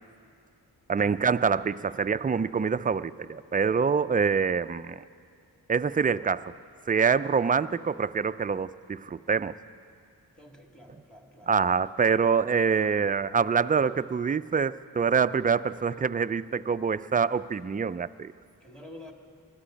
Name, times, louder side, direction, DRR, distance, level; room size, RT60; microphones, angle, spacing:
voice 1, 0.9-5.0 5.7-6.5 6.9-9.5 11.5-18.3, right 6 dB, 20° right, 14 dB, 0.3 m, -25 dB
voice 2, 10.4-11.5 18.6-19.1, left 1 dB, ahead, 2 dB, 2.2 m, -48 dB
20.5 x 13.5 x 5.2 m, 2.3 s
cardioid pair, 40°, 41 cm